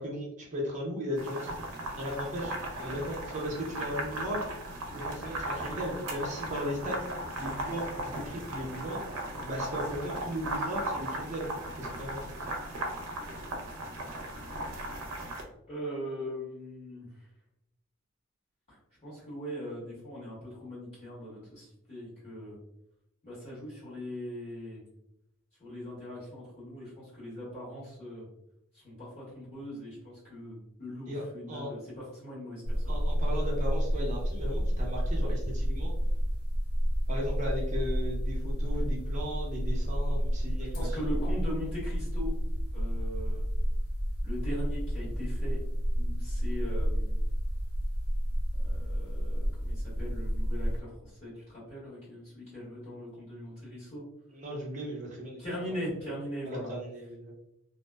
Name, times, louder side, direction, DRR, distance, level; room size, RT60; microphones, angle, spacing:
voice 1, 0.0-1.6 2.0-4.4 4.9-7.0 7.4-9.0 9.4-11.5 11.7-12.3 31.1-31.7 32.9-35.9 37.1-41.3 54.3-55.4 56.4-57.3, equal, 35° right, -3 dB, 0.6 m, -36 dB
sound 1, 1.2-15.4, right 1 dB, 85° right, 0.5 m, -37 dB
voice 2, 15.7-17.1 18.7-22.6 23.2-24.8 25.6-28.2 28.7-32.9 40.6-42.3 42.7-43.4 44.2-45.6 45.9-47.1 48.6-54.0 55.4-56.7, equal, 30° left, -9 dB, 1.3 m, -40 dB
sound 2, 32.6-50.8, equal, 90° left, 0.5 m, -30 dB
2.7 x 2.1 x 2.2 m, 0.81 s
head